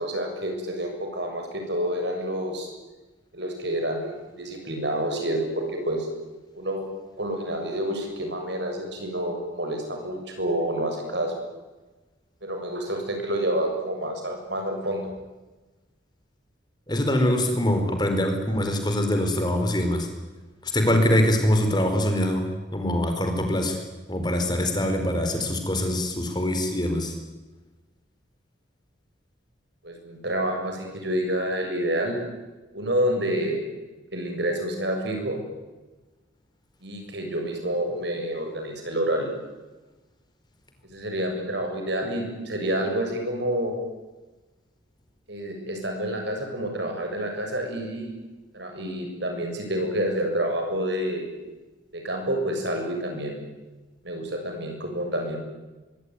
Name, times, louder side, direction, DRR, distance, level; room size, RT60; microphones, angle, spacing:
voice 1, 0.0-2.7 3.3-6.1 6.6-6.8 7.2-11.3 12.4-15.1 29.8-32.2 32.7-33.6 34.1-35.4 36.8-39.3 40.8-43.8 45.3-48.1 48.5-51.3 51.9-53.4 54.0-55.4, right 1 dB, 60° right, 3 dB, 7.3 m, -28 dB
voice 2, 16.9-20.1 20.6-23.8 24.1-27.2, left 1 dB, 20° left, 5 dB, 4.2 m, -23 dB
24.0 x 24.0 x 9.6 m, 1.2 s
head